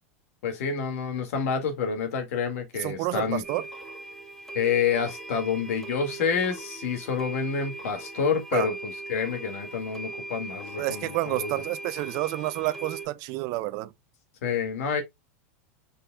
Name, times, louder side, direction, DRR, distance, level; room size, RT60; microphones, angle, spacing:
voice 1, 0.4-3.4 4.5-11.5 14.4-15.0, left 6 dB, 70° left, 1.9 m, -28 dB
voice 2, 2.8-3.6 8.5-8.7 10.8-13.9, right 18 dB, 50° right, 0.6 m, -29 dB
sound 1, 3.4-13.1, right 3 dB, 5° left, 2.2 m, -40 dB
5.2 x 4.5 x 2.2 m
hypercardioid pair, 110°, 8 cm